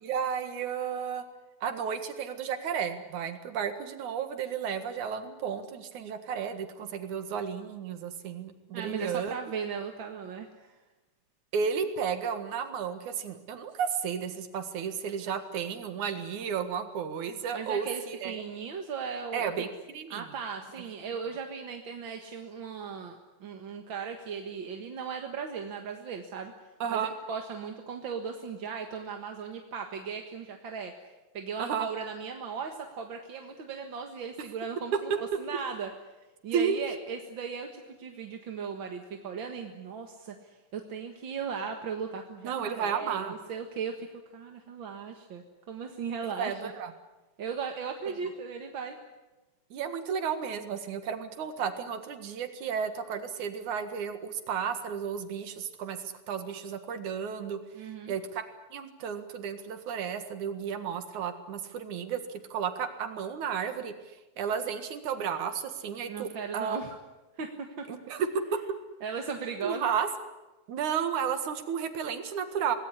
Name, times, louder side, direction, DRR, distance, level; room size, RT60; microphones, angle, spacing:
voice 1, 0.0-1.2 1.6-9.4 11.5-18.4 19.3-20.3 26.8-27.1 31.6-31.9 35.1-35.2 36.5-36.9 42.4-43.3 46.2-46.9 49.7-57.6 58.1-58.4 58.7-62.2 62.5-63.9 64.4-66.8 67.9-68.6 69.6-70.1 70.7-72.8, right 7 dB, 80° right, 8 dB, 3.2 m, -33 dB
voice 2, 8.7-10.8 17.5-19.7 20.1-26.5 26.9-30.9 31.3-35.1 35.4-35.9 36.4-46.7 47.4-49.0 57.7-58.1 66.0-67.0 67.4-67.9 69.0-69.9, right 6 dB, 50° right, 4 dB, 2.0 m, -37 dB
25.5 x 19.0 x 9.9 m, 1.1 s
omnidirectional pair, 3.3 m